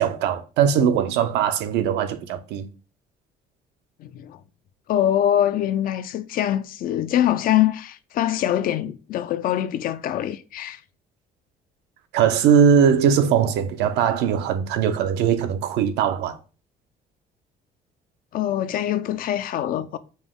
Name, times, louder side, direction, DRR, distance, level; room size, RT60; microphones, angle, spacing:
voice 1, 0.0-2.7 12.1-16.4, right 8 dB, 85° right, 0.5 m, -20 dB
voice 2, 4.0-4.4 4.9-10.8 18.3-20.0, left 11 dB, 60° left, 0.4 m, -23 dB
5.3 x 2.0 x 3.6 m
cardioid pair, 110°, 17 cm